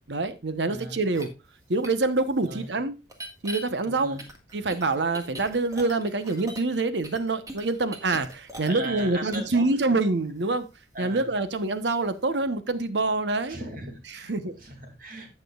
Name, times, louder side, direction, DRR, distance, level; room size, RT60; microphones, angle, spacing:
voice 1, 0.1-1.3 1.7-2.9 3.4-4.2 4.5-10.7 11.0-13.6 14.1-14.5, right 3 dB, 75° right, 0.9 m, -26 dB
voice 2, 0.7-1.0 2.4-2.7 3.8-4.2 8.7-9.7 10.9-11.3 13.5-14.3 14.6-15.3, right 2 dB, 50° right, 2.5 m, -37 dB
sound 1, 1.1-1.2 1.8-1.9 3.1-3.6 4.2-6.8 7.0-9.0 9.3-9.5, right 1 dB, 20° right, 1.6 m, -40 dB
16.0 x 6.0 x 2.4 m
head